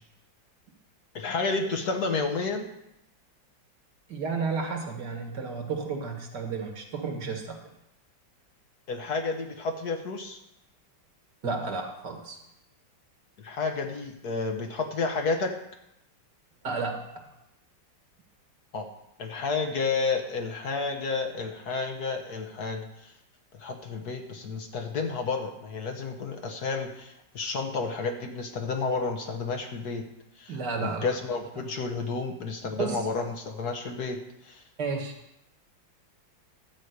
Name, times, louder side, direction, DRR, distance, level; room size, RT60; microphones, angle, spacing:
voice 1, 1.1-2.7 8.9-10.4 13.4-15.5 18.7-18.9 19.2-23.1 23.6-30.0 30.4-34.6, left 4 dB, 60° left, 4 dB, 1.5 m, -31 dB
voice 2, 4.1-7.7 11.4-12.4 16.6-17.3 30.5-31.1 32.7-33.0 34.8-35.1, right 4 dB, 65° right, 3 dB, 2.1 m, -32 dB
12.5 x 5.1 x 8.1 m, 0.82 s
omnidirectional pair, 2.1 m